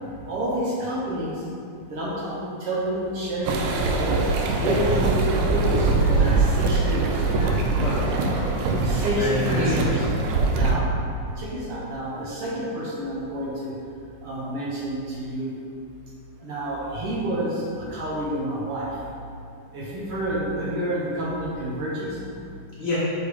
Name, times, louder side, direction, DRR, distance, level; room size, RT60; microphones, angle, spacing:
voice 1, 0.3-1.4 1.9-4.2 4.6-7.3 8.8-10.0 10.5-10.8 11.4-13.7 14.2-15.5 16.4-18.9 19.7-22.2, right 1 dB, 65° right, -6 dB, 1.5 m, -29 dB
sound 1, 3.4-10.8, right 3 dB, 85° right, 2.1 m, -22 dB
voice 2, 6.0-6.3 6.6-6.9 7.3-8.0 9.1-10.0 22.8-23.0, left 2 dB, 90° left, -9 dB, 1.0 m, -30 dB
5.0 x 5.0 x 4.8 m, 2.5 s
omnidirectional pair, 3.7 m